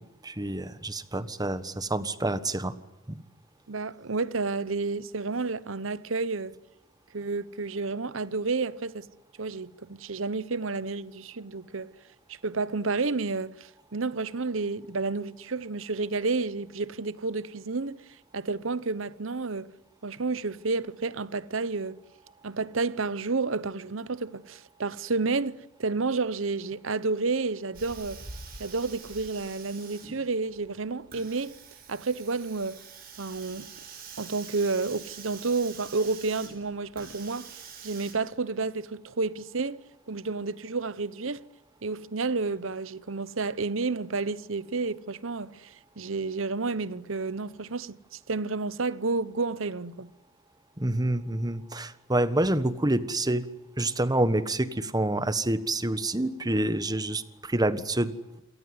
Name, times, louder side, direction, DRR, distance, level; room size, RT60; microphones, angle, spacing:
voice 1, 0.2-2.7 3.1-3.2 50.8-53.4 53.8-58.4, right 1 dB, 20° right, 1.4 m, -27 dB
voice 2, 3.7-6.5 7.1-9.1 9.4-11.9 12.3-18.0 18.3-19.7 20.0-22.0 22.4-28.2 28.6-31.5 31.9-32.8 33.2-33.6 34.2-39.8 40.1-41.4 41.8-50.1, right 3 dB, 70° right, 1.0 m, -30 dB
Hiss, 27.7-38.1, right 5 dB, 45° right, 6.8 m, -46 dB
27.0 x 18.5 x 9.6 m
head